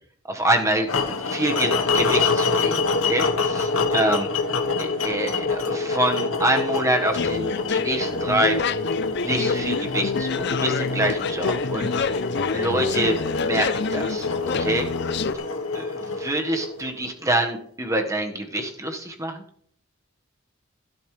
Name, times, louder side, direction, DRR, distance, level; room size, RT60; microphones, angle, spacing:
voice 1, 0.2-4.3 4.8-8.6 9.2-12.2 12.5-14.9 15.7-19.4, right 1 dB, 15° right, 3 dB, 1.5 m, -26 dB
sound 1, 0.9-17.0, left 4 dB, 80° left, 1.3 m, -26 dB
sound 2, 7.1-15.3, left 5 dB, 55° left, 0.5 m, -28 dB
16.0 x 11.5 x 3.3 m, 0.65 s
head